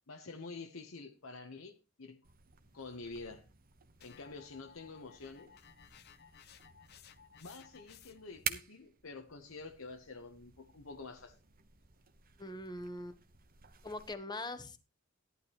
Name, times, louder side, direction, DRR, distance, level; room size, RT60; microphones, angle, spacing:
voice 1, 0.1-2.2 2.7-3.5 4.0-5.5 7.4-11.4, left 3 dB, 80° left, 1.1 m, -48 dB
sound 1, 2.2-14.1, right 8 dB, 45° right, 1.0 m, -49 dB
sound 2, 4.0-8.4, left 8 dB, 50° left, 0.8 m, -59 dB
voice 2, 12.4-13.2 13.8-14.8, left 2 dB, 20° left, 1.1 m, -42 dB
14.0 x 11.5 x 3.0 m
head